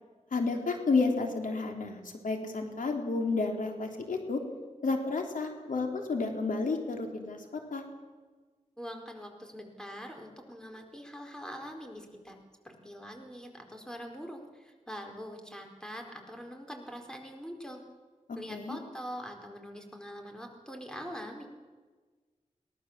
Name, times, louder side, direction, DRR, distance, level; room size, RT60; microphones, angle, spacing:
voice 1, 0.3-4.4 4.8-7.8 18.5-18.8, left 3 dB, 80° left, 3 dB, 3.4 m, -31 dB
voice 2, 8.8-12.4 12.6-17.8 18.3-21.5, equal, 5° left, 3 dB, 4.6 m, -43 dB
22.5 x 18.5 x 7.5 m, 1.4 s
wide cardioid pair, 65°, 13 cm